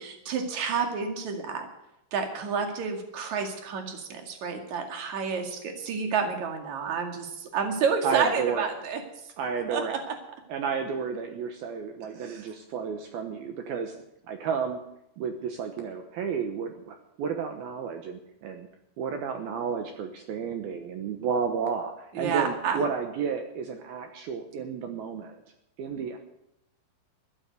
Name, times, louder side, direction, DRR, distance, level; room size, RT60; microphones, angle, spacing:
voice 1, 0.0-1.7 2.1-9.0 9.7-10.0 12.2-12.4 22.1-22.8, right 6 dB, 50° right, 3 dB, 2.8 m, -29 dB
voice 2, 8.0-8.7 9.4-10.0 10.5-14.0 14.3-14.8 15.2-18.7 19.0-25.4 25.8-26.2, right 6 dB, 70° right, 5 dB, 2.4 m, -32 dB
14.5 x 10.0 x 7.9 m, 0.83 s
omnidirectional pair, 5.5 m